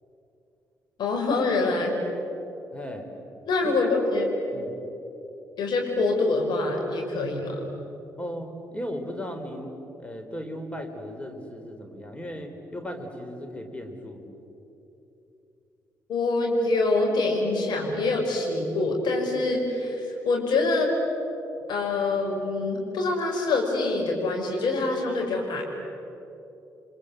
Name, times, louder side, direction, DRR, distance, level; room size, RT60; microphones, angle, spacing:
voice 1, 1.0-1.9 3.5-4.3 5.6-7.6 16.1-20.9 21.7-25.6, left 3 dB, 50° left, 0 dB, 6.3 m, -25 dB
voice 2, 2.7-3.1 3.6-4.2 4.5-4.9 8.2-9.7 10.0-14.4, equal, 15° left, 5 dB, 4.6 m, -37 dB
29.5 x 24.5 x 8.0 m, 2.9 s
figure-of-eight pair, 40°, 9 cm